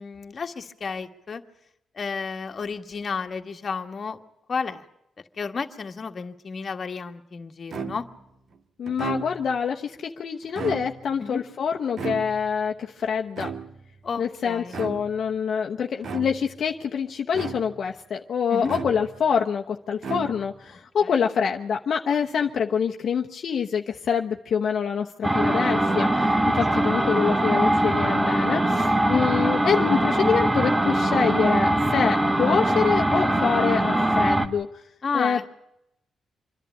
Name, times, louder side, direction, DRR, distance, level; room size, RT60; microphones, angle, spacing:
voice 1, 0.0-1.4 1.9-4.2 4.5-4.8 5.4-8.1 11.2-11.4 14.0-14.8 18.5-18.7 21.0-21.1 26.5-27.1 29.0-29.2 35.0-35.4, left 5 dB, 45° left, 6 dB, 1.6 m, -32 dB
sound 1, 7.7-8.3 8.9-9.6 10.4-11.2 12.0-12.7 13.4-14.0 14.7-15.3 16.0-16.6 17.3-17.9 18.7-19.3 20.0-20.7, right 5 dB, 60° right, 1.7 m, -35 dB
voice 2, 8.8-13.5 14.2-34.7 35.1-35.5, left 7 dB, 65° left, 2 dB, 1.0 m, -26 dB
sound 2, 25.2-34.5, right 1 dB, 15° right, 1.4 m, -22 dB
26.5 x 11.0 x 10.0 m, 0.85 s
cardioid pair, 90°, 0 cm